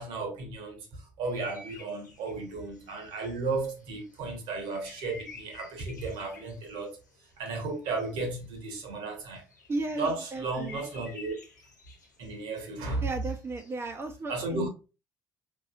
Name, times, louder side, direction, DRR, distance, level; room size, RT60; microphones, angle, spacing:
voice 1, 0.0-7.0 7.4-9.4 10.0-11.4 12.2-13.1 14.3-14.7, right 3 dB, 60° right, 1.2 m, -34 dB
sound 1, 1.2-8.8 9.1-13.7, left 3 dB, 90° left, 0.7 m, -52 dB
voice 2, 9.7-11.1 13.0-14.7, right 3 dB, 25° right, 0.7 m, -35 dB
4.5 x 3.0 x 2.4 m
figure-of-eight pair, 55°, 9 cm